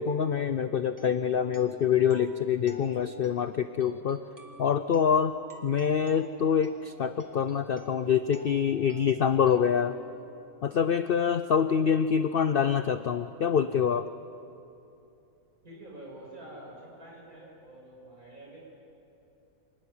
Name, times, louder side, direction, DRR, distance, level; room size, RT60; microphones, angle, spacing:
voice 1, 0.0-4.2 4.6-5.3 5.6-10.0 10.6-14.1, left 7 dB, 75° left, 11 dB, 0.5 m, -25 dB
sound 1, 0.9-10.8, left 1 dB, 10° right, 1.8 m, -52 dB
voice 2, 15.6-18.6, right 1 dB, 65° right, -3 dB, 7.1 m, -47 dB
25.5 x 13.0 x 9.8 m, 2.8 s
omnidirectional pair, 1.6 m